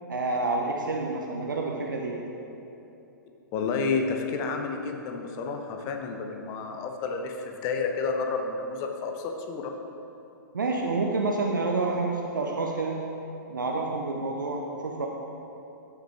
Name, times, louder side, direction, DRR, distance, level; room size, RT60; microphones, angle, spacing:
voice 1, 0.1-2.2 10.5-13.0 13.5-15.1, right 3 dB, 70° right, 0 dB, 0.7 m, -28 dB
voice 2, 3.5-9.7, left 4 dB, 30° left, 4 dB, 0.8 m, -30 dB
12.5 x 5.9 x 3.3 m, 2.9 s
figure-of-eight pair, 110°, 11 cm